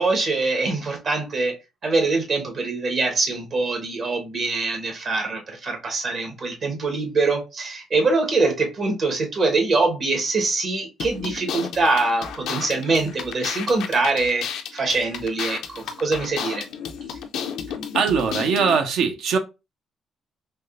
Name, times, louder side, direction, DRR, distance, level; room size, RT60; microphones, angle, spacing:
voice 1, 0.0-1.6 1.8-16.6, right 3 dB, 55° right, 1.1 m, -23 dB
sound 1, 11.0-18.8, left 7 dB, 80° left, 0.4 m, -32 dB
voice 2, 17.9-19.4, right 6 dB, 80° right, 0.5 m, -21 dB
3.4 x 2.6 x 2.4 m
cardioid pair, 90°, 0 cm